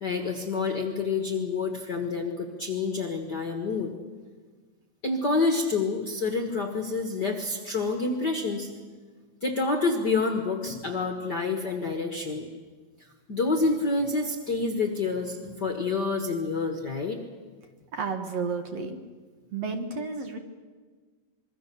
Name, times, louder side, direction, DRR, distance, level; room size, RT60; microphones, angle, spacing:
voice 1, 0.0-3.9 5.0-8.7 9.4-12.5 13.3-17.2, left 3 dB, 45° left, 4 dB, 1.5 m, -28 dB
voice 2, 17.9-19.0 19.5-20.4, right 4 dB, 55° right, 5 dB, 2.2 m, -31 dB
26.0 x 22.5 x 6.9 m, 1.5 s
omnidirectional pair, 3.9 m